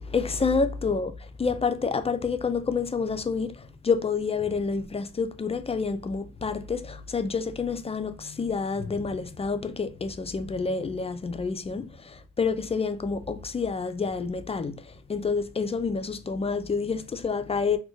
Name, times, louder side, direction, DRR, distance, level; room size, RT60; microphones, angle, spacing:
voice 1, 0.1-1.1 1.4-17.8, left 5 dB, 20° left, 0.3 m, -28 dB
2.4 x 2.2 x 3.8 m
cardioid pair, 90°, 30 cm